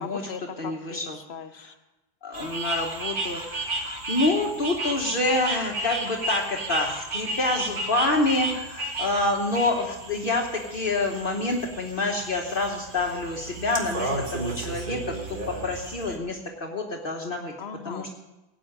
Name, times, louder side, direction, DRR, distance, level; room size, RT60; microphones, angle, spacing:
voice 1, 0.0-1.7 17.6-18.1, left 6 dB, 85° left, 9 dB, 1.2 m, -39 dB
voice 2, 0.6-1.2 2.2-17.5 17.8-18.1, left 2 dB, 60° left, 1 dB, 1.5 m, -27 dB
sound 1, 2.3-16.2, right 2 dB, 55° right, 1.9 m, -33 dB
17.5 x 6.3 x 8.8 m, 1.0 s
omnidirectional pair, 1.0 m